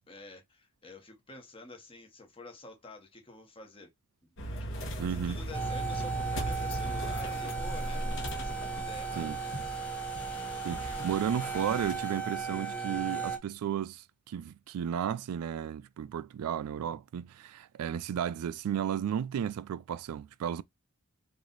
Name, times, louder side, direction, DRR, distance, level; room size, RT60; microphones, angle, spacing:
voice 1, 0.1-3.9 4.7-9.5, left 2 dB, 25° left, 1.0 m, -49 dB
sound 1, 4.4-11.9, equal, 55° left, 1.2 m, -38 dB
voice 2, 5.0-5.4 9.2-9.4 10.6-20.6, right 9 dB, 85° right, 0.3 m, -34 dB
sound 2, 5.5-13.4, right 5 dB, 5° left, 0.5 m, -36 dB
3.1 x 2.6 x 3.8 m
head